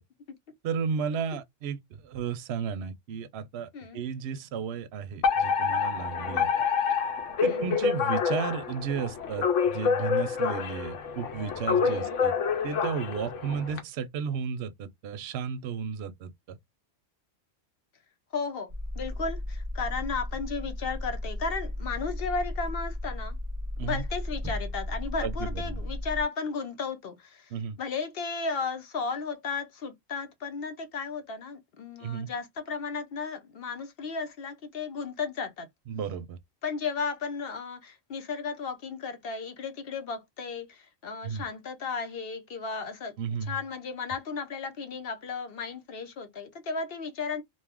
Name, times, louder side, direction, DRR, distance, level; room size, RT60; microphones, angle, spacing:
voice 1, 0.6-6.5 7.4-12.3 12.6-16.6 23.8-24.1 25.2-25.8 27.5-27.8 32.0-32.3 35.9-36.4 41.2-41.4 43.2-43.6, right 6 dB, 60° right, 0.7 m, -33 dB
Alarm, 5.2-13.8, left 6 dB, 75° left, 1.0 m, -27 dB
voice 2, 7.4-7.8 11.8-12.2 13.5-13.6 18.3-18.7 19.0-23.4 23.8-27.5 27.8-35.7 36.6-47.4, left 5 dB, 55° left, 0.8 m, -34 dB
sound 1, 18.7-26.2, left 1 dB, 25° right, 0.3 m, -35 dB
2.5 x 2.3 x 3.5 m
omnidirectional pair, 1.3 m